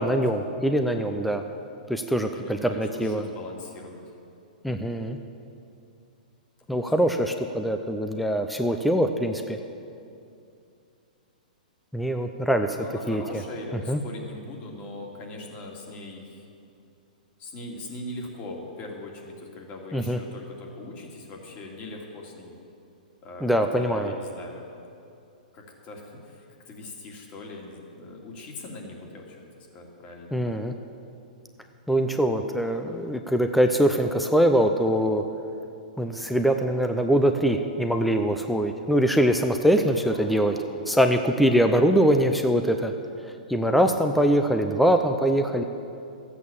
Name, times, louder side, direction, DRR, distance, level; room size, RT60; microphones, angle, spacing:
voice 1, 0.0-1.4 1.9-3.3 4.6-5.2 6.7-9.6 11.9-13.2 13.9-14.0 19.9-20.2 23.4-24.1 30.3-30.7 31.9-35.2 36.0-40.5 40.9-42.9 43.5-45.6, equal, ahead, 6 dB, 0.6 m, -23 dB
voice 2, 2.2-4.0 6.7-6.9 12.7-16.4 17.4-22.6 23.2-24.7 25.5-30.6 40.0-41.2 43.7-44.0, left 2 dB, 35° left, 0 dB, 2.6 m, -41 dB
13.5 x 8.4 x 7.2 m, 2.6 s
hypercardioid pair, 125°, 5 cm